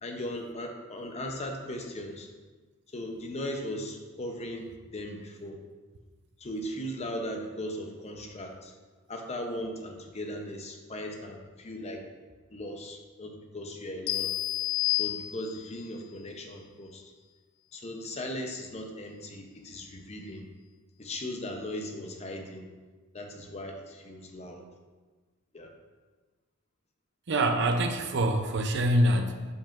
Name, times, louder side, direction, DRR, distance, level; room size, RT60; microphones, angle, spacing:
voice 1, 0.0-2.3 2.9-5.6 6.4-8.7 9.1-12.0 12.5-14.3 15.0-17.0 17.7-20.5 21.0-22.7 23.1-24.6 25.5-25.7, left 1 dB, 30° left, 3 dB, 0.7 m, -38 dB
sound 1, 14.1-15.8, left 18 dB, 85° left, 0.4 m, -30 dB
voice 2, 27.3-29.5, right 1 dB, 60° right, 5 dB, 0.5 m, -25 dB
7.3 x 5.4 x 2.5 m, 1.3 s
head